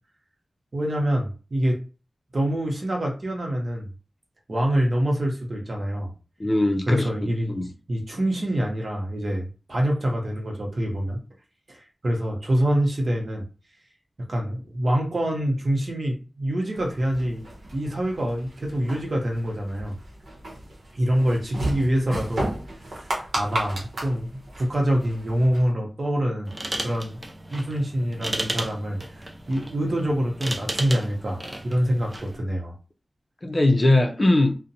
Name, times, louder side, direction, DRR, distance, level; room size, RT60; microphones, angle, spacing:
voice 1, 0.7-1.8 2.3-3.9 4.5-6.1 6.9-7.5 7.9-11.2 11.7-11.8 12.0-13.4 14.3-17.4 17.7-20.0 20.9-22.5 22.8-26.5 26.8-27.2 27.5-29.0 29.5-32.7, equal, 55° right, 0.8 m, -25 dB
voice 2, 6.4-7.7 33.4-34.6, left 1 dB, 35° left, 0.4 m, -21 dB
sound 1, 16.7-25.7, right 1 dB, 85° right, 0.8 m, -34 dB
sound 2, 26.5-32.4, right 1 dB, 30° right, 0.4 m, -34 dB
2.5 x 2.1 x 2.7 m
wide cardioid pair, 70°, 0 cm